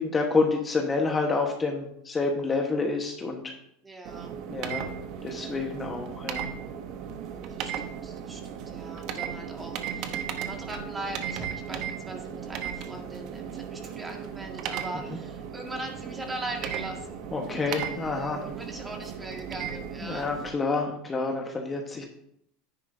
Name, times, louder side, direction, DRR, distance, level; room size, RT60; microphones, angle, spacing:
voice 1, 0.0-3.5 4.5-4.9 5.2-6.5 17.3-18.4 20.0-22.0, left 3 dB, 20° left, 2 dB, 1.3 m, -28 dB
voice 2, 3.8-4.4 7.5-17.2 17.5-20.3, right 2 dB, 15° right, 2 dB, 2.0 m, -40 dB
sound 1, 4.0-20.5, right 8 dB, 55° right, 1.0 m, -36 dB
9.9 x 9.4 x 2.7 m, 0.74 s
supercardioid pair, 105°, 0 cm